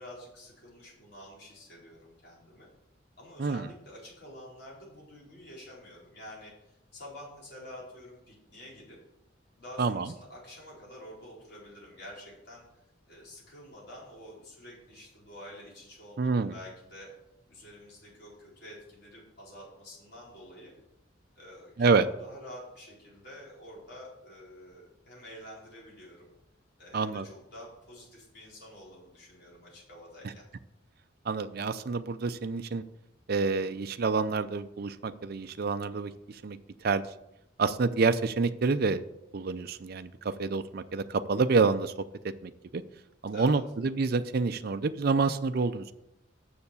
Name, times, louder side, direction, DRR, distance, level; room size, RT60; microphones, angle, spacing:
voice 1, 0.0-2.7 3.2-9.0 9.6-12.6 13.1-17.1 17.5-20.7 21.4-26.3 26.8-30.4 43.3-43.6, left 1 dB, 60° left, -5 dB, 4.1 m, -48 dB
voice 2, 9.8-10.1 16.2-16.5 21.8-22.1 26.9-27.3 31.3-32.8 33.3-37.0 37.6-39.0 39.3-41.9 42.4-42.8 43.2-45.9, right 4 dB, 50° right, 11 dB, 0.5 m, -28 dB
7.0 x 6.6 x 6.9 m, 0.86 s
head